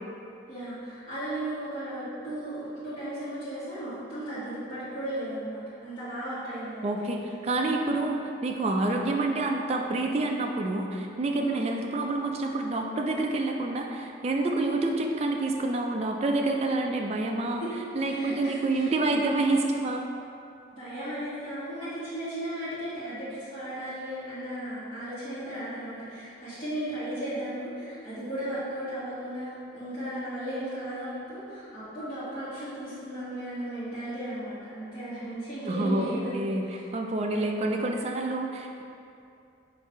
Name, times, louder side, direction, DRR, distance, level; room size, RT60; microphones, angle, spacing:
voice 1, 0.5-6.9 11.4-11.6 17.6-17.7 18.0-18.9 20.7-36.8 37.3-37.6, right 1 dB, 25° left, -15 dB, 1.3 m, -35 dB
voice 2, 6.8-17.6 18.0-20.1 35.7-36.1 36.3-36.6 36.9-38.8, right 2 dB, 35° right, 2 dB, 0.3 m, -28 dB
3.9 x 2.6 x 4.6 m, 2.6 s
head